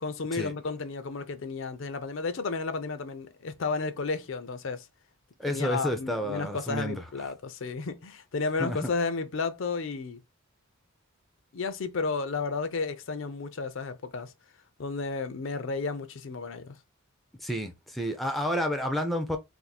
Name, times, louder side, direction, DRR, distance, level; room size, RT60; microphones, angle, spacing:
voice 1, 0.0-4.9 5.5-10.2 11.5-14.3 14.8-16.8, left 4 dB, 60° left, 0.5 m, -32 dB
voice 2, 5.4-7.0 8.6-8.9 17.4-19.4, equal, ahead, 0.4 m, -30 dB
2.6 x 2.5 x 4.1 m
head